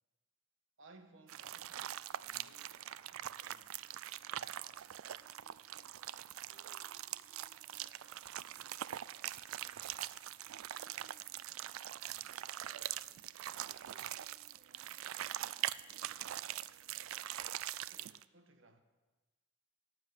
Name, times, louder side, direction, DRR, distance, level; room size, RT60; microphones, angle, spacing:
voice 1, 0.8-3.8 17.8-18.8, right 2 dB, 65° right, 1.2 m, -62 dB
sound 1, 1.3-18.2, right 12 dB, 80° right, 0.4 m, -43 dB
voice 2, 5.1-13.3 13.6-17.1, right 1 dB, 45° right, 1.1 m, -71 dB
14.5 x 7.5 x 9.1 m
head